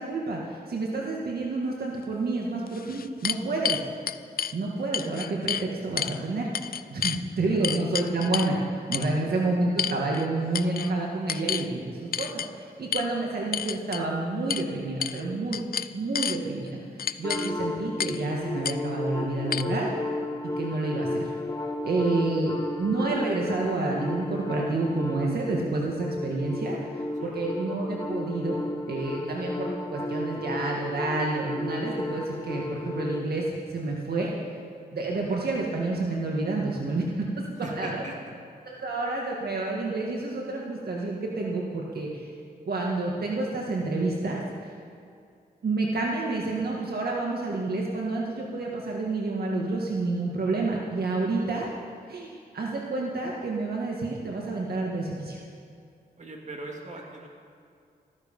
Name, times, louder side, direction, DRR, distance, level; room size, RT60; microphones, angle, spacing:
voice 1, 0.0-3.8 4.5-6.5 6.9-15.6 15.9-16.8 17.2-19.9 20.6-21.3 21.8-26.8 27.2-28.6 28.9-33.5 33.7-34.3 34.9-37.4 37.7-38.0 38.6-42.2 42.7-44.7 45.6-51.7 52.1-55.4, right 2 dB, 70° right, -2 dB, 1.9 m, -29 dB
sound 1, 2.0-2.1 2.7-4.5 4.9-5.7 6.0-6.2 6.5-7.2 7.6-8.5 8.9-9.1 9.8-10.3 10.5-10.9 11.3-11.7 12.1-12.5 12.9-13.1 13.5-14.0 14.5-14.7 15.0-15.2 15.5-16.4 17.0-17.5 18.0-18.2 18.6-18.8 19.5-19.6, left 8 dB, 65° left, 0.5 m, -30 dB
sound 2, 17.2-33.2, left 2 dB, 20° left, 1.1 m, -33 dB
voice 2, 37.6-38.1 56.2-57.3, right 2 dB, 45° right, 0 dB, 2.5 m, -39 dB
14.0 x 14.0 x 5.5 m, 2.4 s
wide cardioid pair, 95°, 17 cm